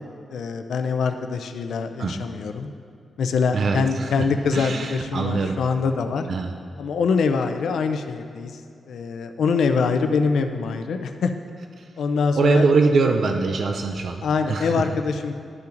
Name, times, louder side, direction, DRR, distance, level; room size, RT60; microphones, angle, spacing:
voice 1, 0.3-2.7 3.2-6.3 6.8-8.6 8.9-11.3 12.0-12.6 14.2-15.3, left 5 dB, 80° left, 7 dB, 0.4 m, -24 dB
voice 2, 3.5-4.3 4.5-5.6 6.3-6.5 11.8-11.9 12.4-14.9, right 4 dB, 50° right, 4 dB, 0.4 m, -22 dB
12.0 x 5.5 x 2.6 m, 2.4 s
wide cardioid pair, 170°, 0 cm